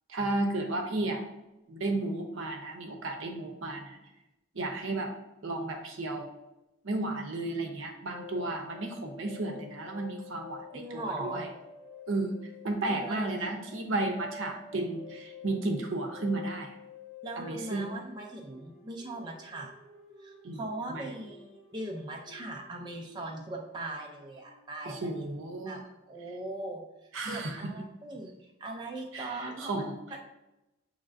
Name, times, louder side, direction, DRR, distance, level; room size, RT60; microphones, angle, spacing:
voice 1, 0.1-1.2 1.7-4.0 4.5-5.1 5.4-6.3 6.8-11.5 12.1-12.3 12.6-16.8 17.4-17.9 20.4-21.1 24.8-25.8 27.1-27.7 29.1-30.0, right 2 dB, 75° right, 4 dB, 0.7 m, -33 dB
sound 1, 8.1-25.5, left 4 dB, 15° left, 0.9 m, -50 dB
voice 2, 10.7-11.4 12.8-13.3 17.2-19.7 20.2-25.2 25.7-26.8 27.3-29.8 30.1-30.2, right 2 dB, 20° right, 0 dB, 0.4 m, -40 dB
6.6 x 3.1 x 2.5 m, 0.94 s
head